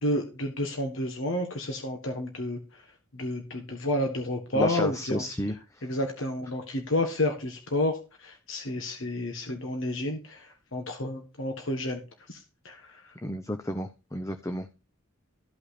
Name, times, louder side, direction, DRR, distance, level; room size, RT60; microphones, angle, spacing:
voice 1, 0.0-2.6 3.1-5.2 5.8-12.0 12.3-12.4 12.6-12.9, left 1 dB, 60° left, 4 dB, 1.5 m, -30 dB
voice 2, 4.5-5.5 13.2-14.7, left 1 dB, 15° left, 7 dB, 0.6 m, -31 dB
14.0 x 5.6 x 4.2 m, 0.31 s
head